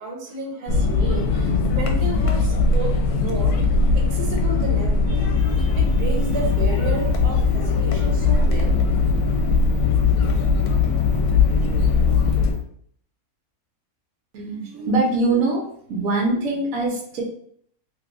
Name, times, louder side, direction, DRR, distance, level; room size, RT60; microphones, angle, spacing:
voice 1, 0.0-3.5 3.9-8.8, right 3 dB, 85° right, 0 dB, 1.3 m, -32 dB
sound 1, 0.7-12.5, left 4 dB, 75° left, 1.1 m, -20 dB
sound 2, 5.4-12.6, left 15 dB, 60° left, 0.6 m, -28 dB
voice 2, 14.3-15.6 15.9-17.2, right 2 dB, 65° right, 0 dB, 1.2 m, -22 dB
3.3 x 2.9 x 2.5 m, 0.64 s
omnidirectional pair, 1.6 m